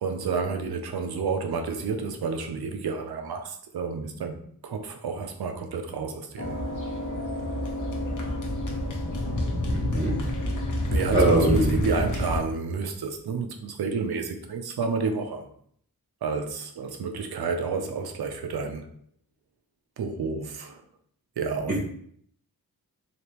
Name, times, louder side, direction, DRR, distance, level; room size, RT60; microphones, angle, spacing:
voice 1, 0.0-6.6 10.9-15.5 16.2-18.9 20.0-20.8 21.4-21.8, right 5 dB, 85° right, 0.6 m, -30 dB
sound 1, 6.4-12.4, left 1 dB, 55° left, 0.7 m, -28 dB
voice 2, 9.7-10.1 11.1-11.7, right 2 dB, 25° right, 0.8 m, -22 dB
3.4 x 2.8 x 2.9 m
wide cardioid pair, 85°, 37 cm